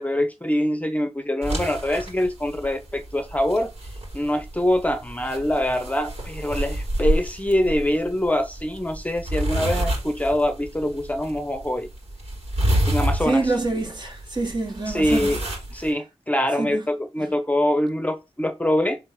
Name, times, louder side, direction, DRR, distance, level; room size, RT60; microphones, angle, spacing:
voice 1, 0.0-3.7 4.1-11.9 12.9-13.4 14.9-15.4 15.7-19.0, left 1 dB, 15° left, 0.9 m, -24 dB
sound 1, 1.4-15.9, right 1 dB, 70° right, 4.9 m, -29 dB
voice 2, 13.2-15.4 16.6-16.8 17.2-17.3, right 3 dB, 45° right, 2.6 m, -26 dB
5.5 x 4.4 x 5.8 m
cardioid pair, 55°, 11 cm